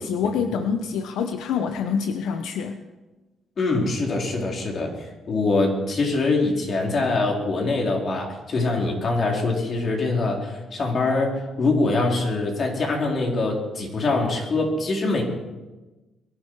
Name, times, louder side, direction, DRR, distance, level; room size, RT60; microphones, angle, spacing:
voice 1, 0.0-2.8, left 6 dB, 85° left, 7 dB, 0.9 m, -26 dB
voice 2, 3.6-15.2, left 3 dB, 50° left, 0 dB, 4.2 m, -24 dB
22.5 x 11.5 x 4.9 m, 1.1 s
cardioid pair, 90°, 0 cm